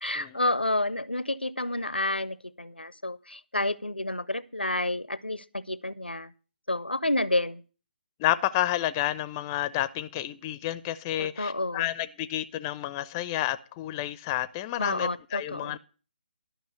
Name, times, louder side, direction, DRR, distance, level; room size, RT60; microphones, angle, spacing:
voice 1, 0.0-6.3 6.7-7.6 11.2-11.8 14.8-15.8, left 1 dB, 90° left, 0.6 m, -30 dB
voice 2, 8.2-15.8, left 14 dB, 20° left, 0.5 m, -30 dB
12.0 x 6.0 x 8.1 m
figure-of-eight pair, 140°, 5 cm